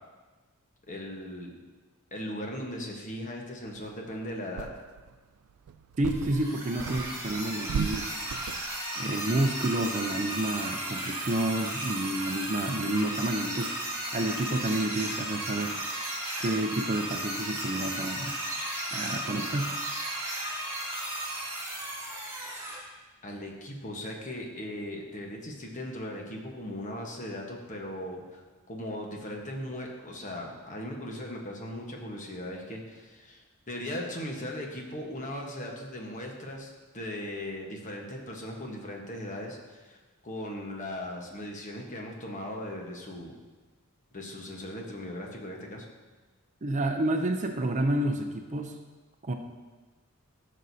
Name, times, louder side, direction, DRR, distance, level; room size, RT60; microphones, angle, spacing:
voice 1, 0.9-1.6 2.1-4.7 23.2-28.4 28.7-40.0 40.2-43.4 44.1-45.9, left 1 dB, 35° left, 0 dB, 1.2 m, -38 dB
sound 1, 3.9-4.0 4.6-5.1 5.7-6.5 6.8-8.8, right 6 dB, 85° right, 0.3 m, -36 dB
voice 2, 6.0-8.2 9.0-15.8 16.4-18.4 18.9-19.7 46.6-48.8 49.2-49.3, right 1 dB, 35° right, 5 dB, 0.5 m, -30 dB
sound 2, 6.1-22.8, right 1 dB, 15° right, 2.7 m, -35 dB
13.5 x 6.4 x 2.8 m, 1.3 s
head